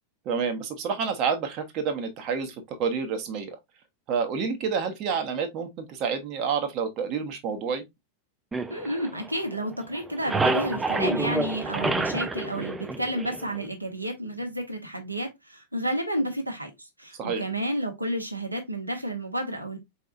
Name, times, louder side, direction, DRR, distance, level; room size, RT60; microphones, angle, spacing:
voice 1, 0.2-3.6 4.1-7.8 17.2-17.4, right 6 dB, 40° right, 1.0 m, -29 dB
sound 1, 8.5-9.7 9.9-13.6, right 3 dB, 10° right, 0.5 m, -28 dB
voice 2, 8.7-19.8, right 1 dB, 85° right, 1.2 m, -31 dB
4.6 x 4.3 x 2.4 m
figure-of-eight pair, 90°, 0 cm